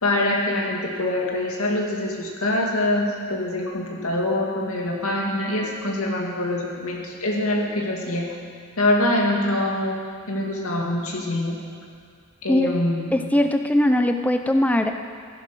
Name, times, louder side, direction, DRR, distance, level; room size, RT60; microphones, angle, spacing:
voice 1, 0.0-8.3 8.8-10.0 10.3-11.6 12.4-13.1, left 1 dB, 85° left, -1 dB, 2.4 m, -24 dB
voice 2, 13.1-15.0, left 1 dB, 5° left, 6 dB, 0.5 m, -20 dB
15.0 x 11.0 x 5.9 m, 2.1 s
head